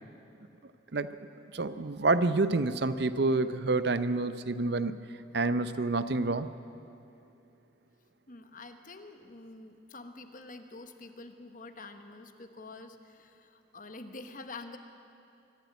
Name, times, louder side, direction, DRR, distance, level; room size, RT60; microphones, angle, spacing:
voice 1, 1.5-4.9 5.3-6.5, right 3 dB, 60° right, 12 dB, 0.7 m, -28 dB
voice 2, 8.3-14.8, left 3 dB, 45° left, 7 dB, 1.2 m, -47 dB
24.0 x 11.5 x 9.5 m, 2.7 s
head